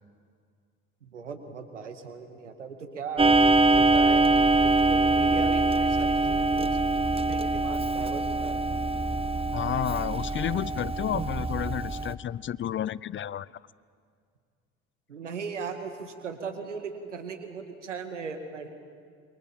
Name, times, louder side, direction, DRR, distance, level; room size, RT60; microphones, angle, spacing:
voice 1, 1.0-3.4 3.7-8.6 10.0-10.3 15.1-18.7, right 5 dB, 90° right, 7 dB, 2.1 m, -38 dB
Clock, 3.2-12.1, right 2 dB, 15° right, 1.2 m, -24 dB
voice 2, 9.5-13.5, left 10 dB, 35° left, 21 dB, 0.6 m, -31 dB
29.0 x 24.0 x 7.2 m, 2.2 s
hypercardioid pair, 60°, 35 cm